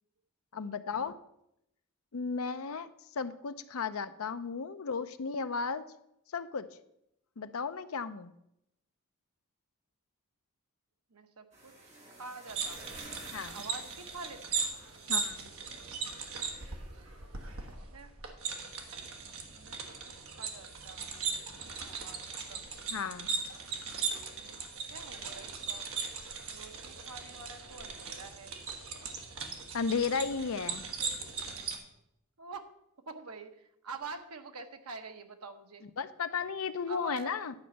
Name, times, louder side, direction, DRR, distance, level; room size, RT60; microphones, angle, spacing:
voice 1, 0.5-1.2 2.1-5.9 6.3-6.7 7.4-8.3 13.3-13.6 15.1-15.5 22.9-23.3 29.7-30.9 36.0-37.5, left 5 dB, 75° left, 12 dB, 0.6 m, -34 dB
voice 2, 11.1-11.7 12.1-12.9 13.5-14.8 17.4-18.1 19.5-20.0 20.3-22.2 22.5-22.6 24.0-25.9 26.5-28.6 32.4-32.7 33.1-35.8 36.9-37.4, right 4 dB, 85° right, 7 dB, 1.0 m, -47 dB
sound 1, 11.5-17.7, right 2 dB, 30° right, 1.9 m, -53 dB
sound 2, 12.5-31.8, right 5 dB, 70° right, 1.4 m, -38 dB
10.5 x 5.1 x 7.1 m, 0.82 s
head